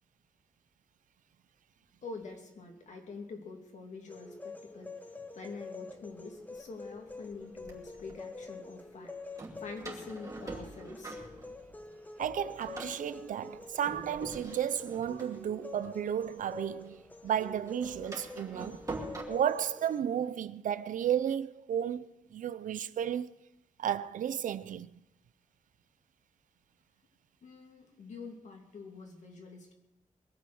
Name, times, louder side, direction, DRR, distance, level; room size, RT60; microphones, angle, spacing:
voice 1, 2.0-5.0 5.3-9.1 9.6-11.2 18.6-18.7 27.4-29.7, left 4 dB, 65° left, 2.7 m, -46 dB
sound 1, 4.1-20.0, left 3 dB, 10° left, 0.9 m, -47 dB
Door, 6.2-6.3 7.0-8.2 9.4-11.9 12.2-16.7 17.0-19.2, right 2 dB, 25° right, 2.6 m, -45 dB
voice 2, 12.2-18.8 19.3-23.3 23.8-24.9, right 9 dB, 85° right, 0.6 m, -33 dB
22.0 x 7.8 x 6.4 m
wide cardioid pair, 150°, 13 cm